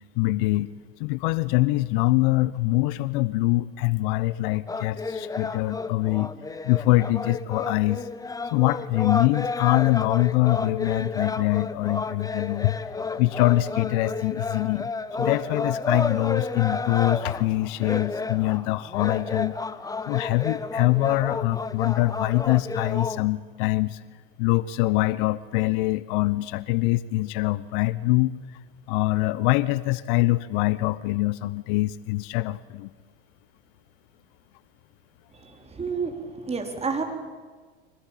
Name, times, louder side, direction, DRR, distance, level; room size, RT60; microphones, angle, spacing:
voice 1, 0.2-0.7 1.0-6.3 6.6-8.1 8.5-12.8 13.2-14.9 15.2-19.6 20.1-24.0 24.4-28.3 28.9-32.9, left 19 dB, 60° left, 17 dB, 0.9 m, -24 dB
sound 1, 4.7-23.2, left 3 dB, 10° left, 1.1 m, -31 dB
voice 2, 35.3-37.0, right 5 dB, 20° right, 5 dB, 4.4 m, -30 dB
24.5 x 17.5 x 9.1 m, 1.4 s
hypercardioid pair, 85°, 29 cm